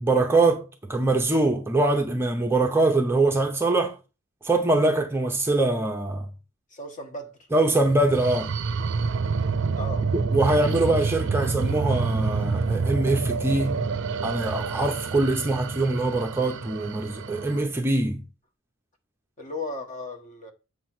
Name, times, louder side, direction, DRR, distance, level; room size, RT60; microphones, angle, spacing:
voice 1, 0.0-3.9 4.4-6.3 7.5-8.5 10.1-13.8 14.2-18.2, right 2 dB, 10° right, 0.6 m, -23 dB
voice 2, 6.7-7.4 9.8-10.1 19.4-20.5, left 2 dB, 35° left, 1.2 m, -35 dB
sound 1, 7.9-17.6, right 4 dB, 55° right, 0.5 m, -28 dB
7.7 x 3.0 x 5.9 m
head